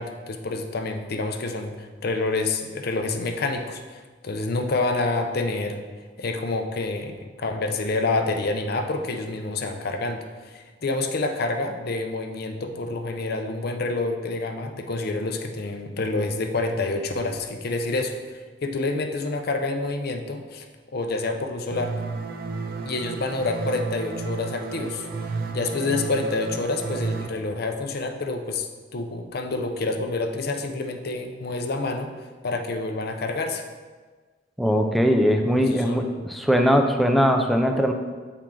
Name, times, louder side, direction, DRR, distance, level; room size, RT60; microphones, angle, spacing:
voice 1, 0.0-5.8 6.2-20.7 20.9-22.0 22.8-25.1 25.5-33.6 35.6-36.2, left 3 dB, 55° left, 5 dB, 0.6 m, -28 dB
sound 1, 21.7-27.3, right 4 dB, 55° right, 0.5 m, -32 dB
voice 2, 34.6-37.9, equal, ahead, 4 dB, 0.4 m, -20 dB
7.3 x 4.5 x 3.7 m, 1.4 s
head